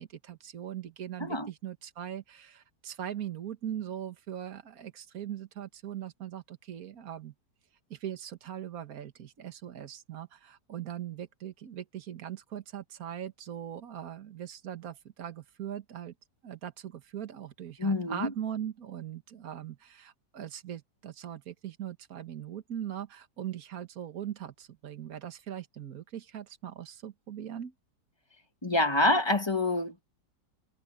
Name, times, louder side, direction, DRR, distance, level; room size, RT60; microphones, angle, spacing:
voice 1, 0.0-7.3 7.9-16.1 16.4-27.7, right 10 dB, 55° right, 1.9 m, -40 dB
voice 2, 17.8-18.3 28.6-30.0, left 2 dB, 15° left, 1.6 m, -26 dB
omnidirectional pair, 1.9 m